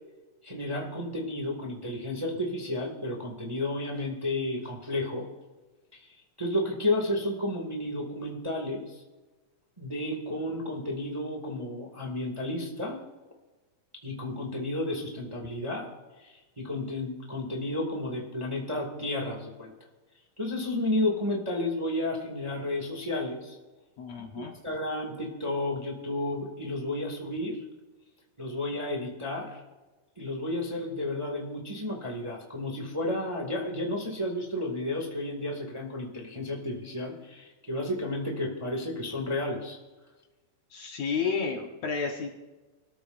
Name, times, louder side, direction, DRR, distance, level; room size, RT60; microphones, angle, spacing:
voice 1, 0.4-5.3 6.0-6.1 6.4-9.0 9.8-13.0 14.0-15.9 16.2-19.7 20.4-23.5 24.3-27.6 28.4-29.6 30.2-39.8, left 1 dB, 10° right, 0 dB, 1.6 m, -32 dB
voice 2, 24.0-24.6 40.7-42.3, left 5 dB, 60° left, 2 dB, 2.1 m, -31 dB
26.0 x 14.0 x 2.6 m, 1.2 s
omnidirectional pair, 3.9 m